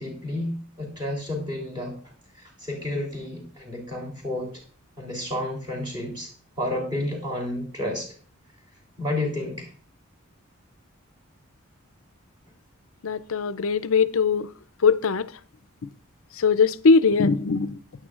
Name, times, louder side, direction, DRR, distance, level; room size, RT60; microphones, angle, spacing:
voice 1, 0.0-1.9 2.4-4.5 5.0-6.3 6.6-8.1 9.0-9.7, left 1 dB, 20° right, 3.4 m, -31 dB
voice 2, 13.0-14.5 14.8-15.3 16.4-17.8, left 5 dB, 70° left, 0.5 m, -20 dB
16.0 x 9.7 x 2.5 m
head